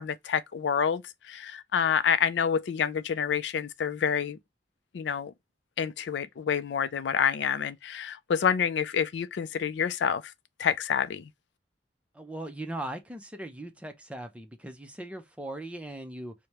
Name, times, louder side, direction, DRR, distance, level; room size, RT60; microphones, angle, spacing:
voice 1, 0.0-4.4 4.9-5.3 5.8-10.3 10.6-11.3, left 7 dB, 80° left, 0.4 m, -28 dB
voice 2, 12.1-16.3, right 1 dB, 5° right, 0.6 m, -39 dB
4.9 x 2.1 x 2.9 m
head